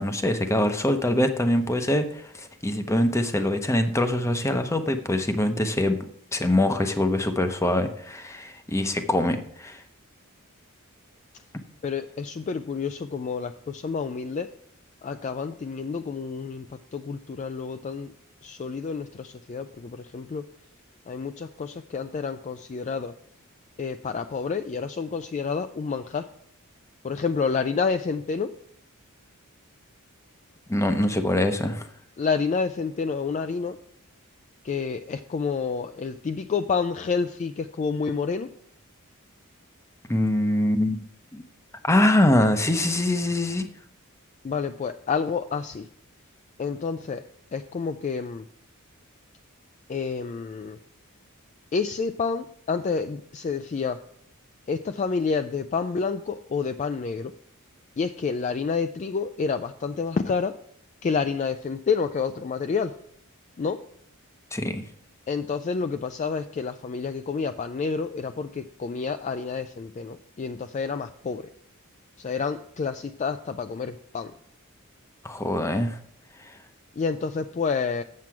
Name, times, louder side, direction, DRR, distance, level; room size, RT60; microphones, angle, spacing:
voice 1, 0.0-9.8 30.7-31.9 40.1-41.0 41.3-41.4 41.8-43.7 64.5-64.8 75.2-76.0 76.4-76.6, left 1 dB, 15° left, 7 dB, 0.7 m, -24 dB
voice 2, 11.8-14.5 15.0-18.1 18.4-20.4 21.1-23.1 23.8-26.3 27.0-28.5 32.2-33.8 34.6-38.5 44.4-45.9 46.6-47.2 47.5-48.5 49.9-50.8 51.7-54.0 54.7-57.3 58.0-60.5 61.0-62.9 63.6-63.8 65.3-71.5 72.2-74.3 77.0-78.0, left 5 dB, 35° left, 8 dB, 0.3 m, -29 dB
7.6 x 7.4 x 4.6 m, 0.66 s
head